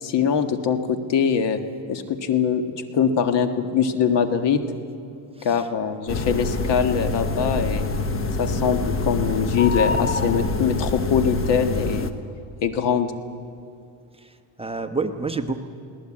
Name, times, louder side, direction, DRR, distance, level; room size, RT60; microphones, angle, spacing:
voice 1, 0.0-1.6 1.9-2.6 2.9-4.6 5.4-7.8 8.4-8.8 9.0-12.1 12.6-13.1, left 7 dB, 65° left, 7 dB, 1.7 m, -22 dB
voice 2, 5.4-5.7 14.2-15.6, right 4 dB, 15° right, 6 dB, 1.0 m, -29 dB
sound 1, 6.1-12.1, left 3 dB, 30° left, 1.2 m, -25 dB
22.0 x 17.5 x 8.7 m, 2.4 s
cardioid pair, 120°, 45 cm